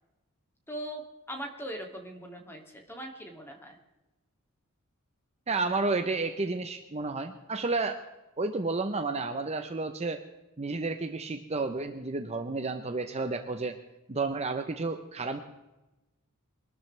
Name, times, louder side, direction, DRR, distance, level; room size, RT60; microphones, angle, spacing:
voice 1, 0.7-1.0 1.3-3.8, right 1 dB, 10° left, 2 dB, 2.5 m, -40 dB
voice 2, 5.5-8.0 8.4-10.2 10.6-13.8 14.1-15.4, right 3 dB, 30° right, 7 dB, 0.8 m, -31 dB
23.0 x 12.5 x 3.3 m, 1.0 s
head